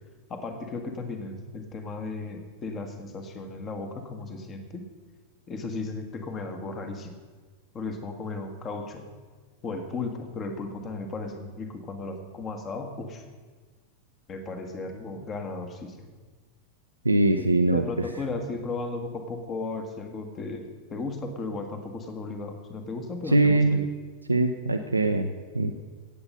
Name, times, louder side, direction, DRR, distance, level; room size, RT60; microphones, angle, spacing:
voice 1, 0.3-4.8 5.5-7.2 7.7-9.0 9.6-13.2 14.3-16.1 17.7-23.9, left 3 dB, 25° left, 6 dB, 1.5 m, -35 dB
voice 2, 17.0-18.1 23.3-23.8 24.3-25.7, right 2 dB, 85° right, 6 dB, 0.6 m, -22 dB
17.0 x 8.1 x 5.5 m, 1.4 s
figure-of-eight pair, 90°, 0 cm